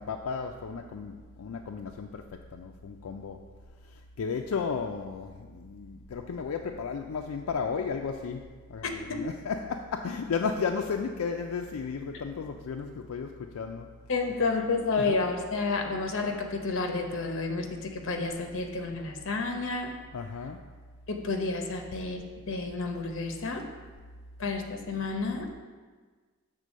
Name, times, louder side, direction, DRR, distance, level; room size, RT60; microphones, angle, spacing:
voice 1, 0.0-3.4 4.2-13.9 15.0-15.2 20.1-20.6, left 5 dB, 85° left, 3 dB, 0.4 m, -34 dB
voice 2, 8.8-9.2 14.1-20.0 21.1-22.2 22.5-23.6 24.4-25.6, left 3 dB, 60° left, 4 dB, 0.8 m, -30 dB
6.7 x 3.7 x 6.2 m, 1.4 s
head